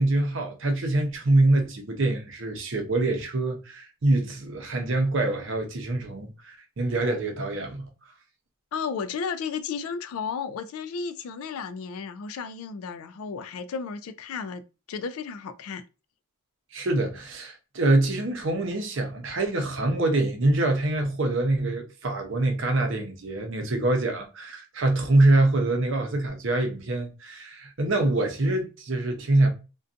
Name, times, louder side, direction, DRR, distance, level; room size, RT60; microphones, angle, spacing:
voice 1, 0.0-7.9 16.7-29.5, right 2 dB, 60° right, 0.6 m, -25 dB
voice 2, 8.7-14.6 14.9-15.8, left 6 dB, 80° left, 0.3 m, -33 dB
2.5 x 2.2 x 2.4 m
head